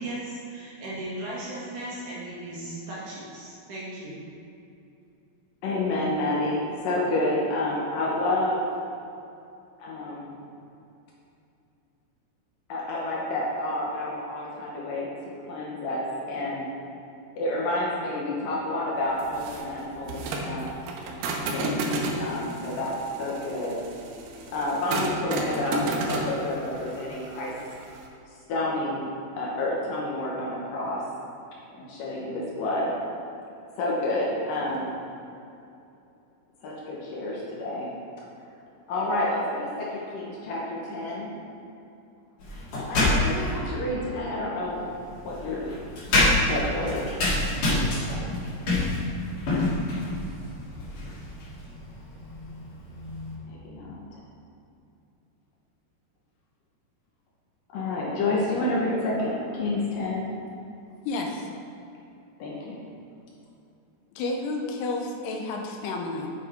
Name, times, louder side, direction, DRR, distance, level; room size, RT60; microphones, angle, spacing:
voice 1, 0.0-4.2, right 1 dB, 55° right, -7 dB, 3.1 m, -36 dB
voice 2, 5.6-8.6 9.8-10.4 12.7-15.1 15.5-16.7 17.4-20.7 21.4-21.7 22.2-23.8 24.5-27.5 28.5-29.1 29.4-31.0 31.8-32.9 33.8-34.9 36.6-37.9 38.9-41.3 42.8-44.8 45.2-45.8 46.5-47.1 53.5-54.0 57.7-60.3 62.4-62.8, left 1 dB, 70° left, -4 dB, 2.4 m, -29 dB
sound 1, 19.2-28.1, right 2 dB, 75° right, 2.7 m, -32 dB
sound 2, 42.4-43.6 44.7-53.4, left 1 dB, 50° left, 3.2 m, -27 dB
voice 3, 61.1-61.5 64.2-66.3, left 2 dB, 90° left, 2 dB, 2.9 m, -31 dB
8.2 x 8.0 x 4.3 m, 2.7 s
omnidirectional pair, 4.7 m